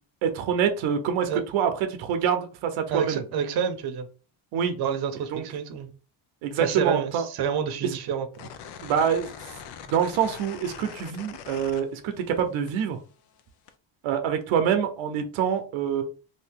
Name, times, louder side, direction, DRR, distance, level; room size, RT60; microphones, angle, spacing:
voice 1, 0.2-3.2 4.5-4.8 5.3-5.4 6.4-7.3 7.8-7.9 8.8-9.3 9.9-13.0 14.0-16.0, right 8 dB, 85° right, 0.7 m, -25 dB
voice 2, 2.9-4.1 4.8-5.9 6.6-8.5, right 7 dB, 55° right, 0.8 m, -28 dB
sound 1, 8.3-12.4 12.7-13.7, left 7 dB, 60° left, 0.6 m, -42 dB
2.7 x 2.6 x 3.5 m
cardioid pair, 110°, 46 cm